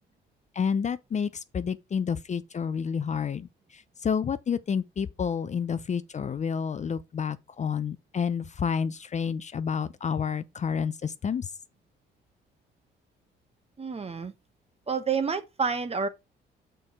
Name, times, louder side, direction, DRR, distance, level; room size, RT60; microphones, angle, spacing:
voice 1, 0.6-3.5 3.7-11.5, left 6 dB, 35° left, 0.5 m, -29 dB
voice 2, 13.8-14.3 14.9-16.1, right 5 dB, 30° right, 1.2 m, -29 dB
6.3 x 4.5 x 4.8 m
cardioid pair, 90°, 20 cm